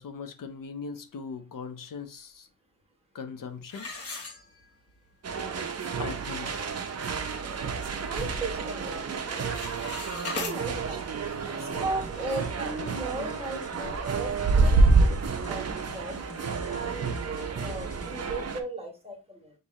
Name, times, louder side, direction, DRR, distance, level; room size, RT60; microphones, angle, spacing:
voice 1, 0.0-2.5 3.1-3.9 6.0-6.8, left 5 dB, 70° left, 0.6 m, -39 dB
sound 1, 3.7-5.0 5.4-5.5 6.1-6.2 6.6-6.9 7.3-8.4 8.7-9.0 9.3-10.6, left 3 dB, 40° left, 1.0 m, -38 dB
sound 2, 5.2-18.6, right 3 dB, 45° right, 0.6 m, -28 dB
voice 2, 8.0-9.5 10.3-11.1 11.4-15.2 15.5-16.2 16.7-19.5, right 2 dB, 15° right, 1.3 m, -37 dB
sound 3, 11.6-18.3, left 1 dB, 20° left, 0.7 m, -48 dB
5.5 x 2.6 x 3.1 m
wide cardioid pair, 115°, 35 cm